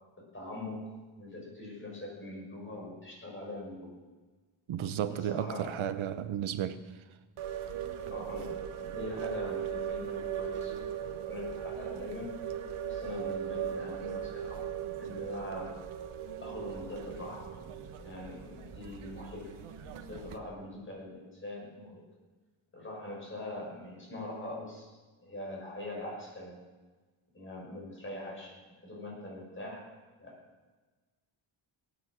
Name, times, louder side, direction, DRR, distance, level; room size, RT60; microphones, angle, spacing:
voice 1, 0.2-4.0 5.1-5.9 8.1-12.3 12.9-15.8 16.4-17.5 18.0-19.5 19.9-22.0 22.7-24.9 25.2-26.6 27.3-29.9 30.2-30.4, left 1 dB, 25° left, 5.9 m, -43 dB
voice 2, 4.7-6.8, right 10 dB, 75° right, 0.9 m, -33 dB
sound 1, 7.4-20.4, right 9 dB, 90° right, 1.3 m, -38 dB
18.5 x 10.5 x 6.1 m
wide cardioid pair, 120°, 49 cm